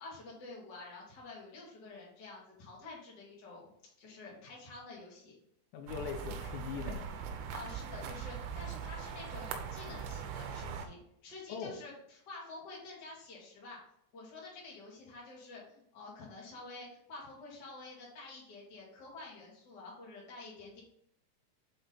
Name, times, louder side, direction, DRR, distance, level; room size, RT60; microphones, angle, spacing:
voice 1, 0.0-5.4 7.5-13.8 14.1-20.8, left 3 dB, 55° left, -4 dB, 1.2 m, -49 dB
voice 2, 5.7-7.5 11.5-11.8, left 7 dB, 85° left, 4 dB, 2.5 m, -42 dB
sound 1, 5.9-10.9, right 7 dB, 85° right, 3.3 m, -41 dB
7.7 x 4.2 x 4.0 m, 0.71 s
omnidirectional pair, 6.0 m